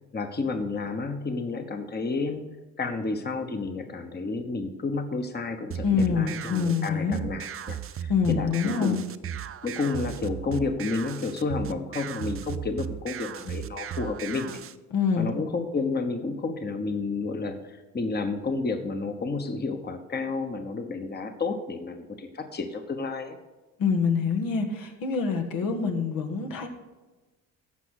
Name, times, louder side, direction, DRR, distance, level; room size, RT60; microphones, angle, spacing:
voice 1, 0.1-2.4 2.8-9.0 9.6-14.6 15.2-23.4, left 3 dB, 30° left, 7 dB, 1.1 m, -31 dB
sound 1, 5.7-14.7, right 9 dB, 40° right, 0.5 m, -36 dB
voice 2, 5.8-7.2 8.1-9.0 14.9-15.3 23.8-26.7, left 5 dB, 75° left, 3 dB, 1.5 m, -25 dB
14.5 x 5.0 x 6.4 m, 1.2 s
supercardioid pair, 75°, 35 cm